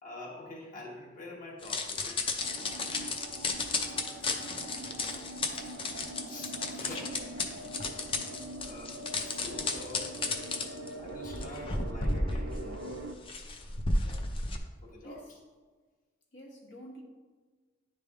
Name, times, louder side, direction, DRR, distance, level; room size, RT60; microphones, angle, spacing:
voice 1, 0.0-2.3 2.6-3.0 4.4-4.5 5.0-5.2 6.3-7.0 8.6-10.2 11.0-13.0 14.0-14.2 14.8-15.4, left 2 dB, 45° left, -5 dB, 1.1 m, -46 dB
sound 1, 1.6-14.6, left 3 dB, 30° left, 0.5 m, -33 dB
sound 2, 2.4-13.1, right 1 dB, 85° right, 0.6 m, -43 dB
voice 2, 16.3-17.0, equal, 70° left, -2 dB, 1.3 m, -47 dB
10.0 x 3.3 x 3.5 m, 1.4 s
head